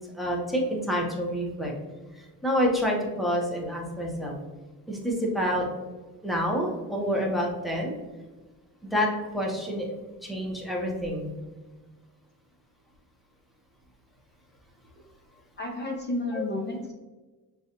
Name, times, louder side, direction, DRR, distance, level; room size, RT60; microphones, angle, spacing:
voice 1, 0.1-1.7 2.1-4.3 4.9-5.7 6.2-8.0 8.9-9.9 10.2-11.3 16.3-16.4, equal, ahead, -2 dB, 0.7 m, -28 dB
voice 2, 15.6-16.9, left 2 dB, 30° left, -1 dB, 0.4 m, -31 dB
6.4 x 2.3 x 2.8 m, 1.2 s
wide cardioid pair, 160°, 37 cm